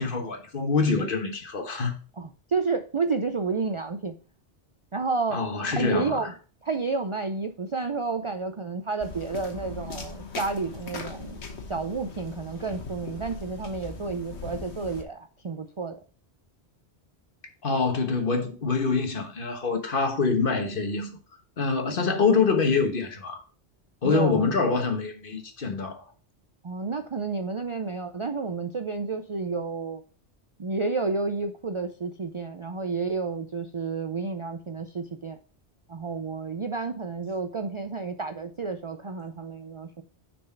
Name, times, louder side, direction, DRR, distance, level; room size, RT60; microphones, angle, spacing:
voice 1, 0.0-2.0 5.3-6.3 17.6-21.2 21.6-23.4 24.0-26.0, left 4 dB, 55° left, 1.3 m, -25 dB
voice 2, 2.2-4.1 4.9-5.4 5.7-6.3 6.6-11.4 11.7-16.0 24.0-24.5 26.6-30.0 30.6-35.4 35.9-40.0, right 4 dB, 45° right, 0.4 m, -30 dB
sound 1, 9.0-15.0, left 4 dB, 80° left, 1.4 m, -39 dB
6.4 x 4.3 x 5.5 m
omnidirectional pair, 1.1 m